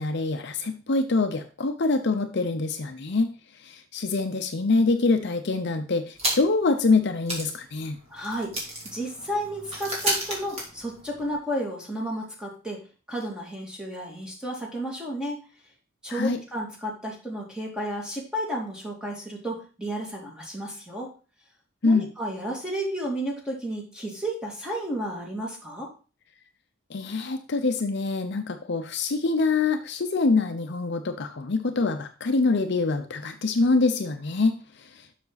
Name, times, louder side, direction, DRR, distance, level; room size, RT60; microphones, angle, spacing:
voice 1, 0.0-3.3 3.6-8.0 16.1-16.4 21.8-22.1 26.9-35.1, left 3 dB, 55° left, 7 dB, 0.7 m, -25 dB
sound 1, 6.2-6.7 7.0-7.1 7.3-11.4, right 1 dB, 30° right, 2.7 m, -32 dB
voice 2, 8.1-8.6 8.8-12.8 13.1-15.5 16.0-21.1 21.8-25.9, right 1 dB, 5° right, -2 dB, 2.3 m, -32 dB
7.2 x 6.0 x 4.0 m, 0.36 s
head